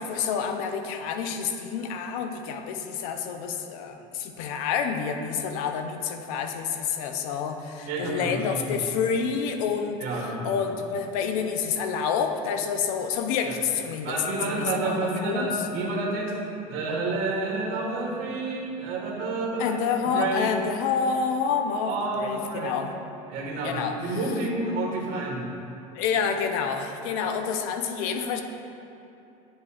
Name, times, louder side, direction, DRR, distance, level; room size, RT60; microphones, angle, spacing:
voice 1, 0.0-15.6 19.6-22.9 23.6-24.2 25.9-28.4, left 6 dB, 80° left, 6 dB, 0.6 m, -28 dB
voice 2, 7.8-8.7 10.0-10.5 13.5-13.6 14.0-16.3 16.7-20.5 21.9-22.8 23.3-25.4, right 2 dB, 60° right, -2 dB, 1.4 m, -29 dB
9.7 x 5.2 x 2.4 m, 2.8 s
supercardioid pair, 125°, 18 cm